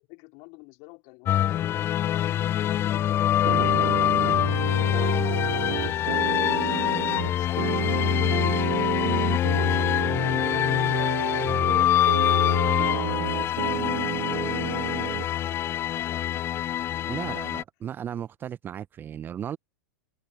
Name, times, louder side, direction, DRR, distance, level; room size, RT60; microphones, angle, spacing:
voice 1, 0.0-1.9 3.6-7.0 7.4-9.1 9.5-11.9 12.4-16.8 17.4-17.6, left 32 dB, 40° left, 3.3 m, -48 dB
sound 1, 1.3-17.6, left 12 dB, 25° left, 0.7 m, -25 dB
sound 2, 3.4-15.3, right 26 dB, 45° right, 1.5 m, -31 dB
voice 2, 17.1-19.6, right 9 dB, 20° right, 0.8 m, -35 dB
figure-of-eight pair, 100°, 10 cm